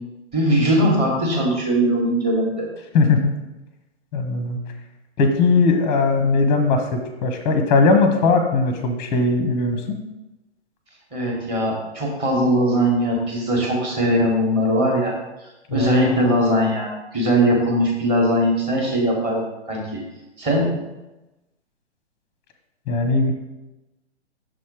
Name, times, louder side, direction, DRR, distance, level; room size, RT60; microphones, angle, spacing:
voice 1, 0.3-2.7 11.1-15.2 15.7-20.0 20.4-20.7, equal, 15° right, -1 dB, 1.3 m, -20 dB
voice 2, 2.9-3.3 4.1-4.6 5.2-10.0 15.7-16.2 22.9-23.3, left 3 dB, 15° left, 6 dB, 0.7 m, -19 dB
6.1 x 4.2 x 4.8 m, 1.0 s
figure-of-eight pair, 125°, 35 cm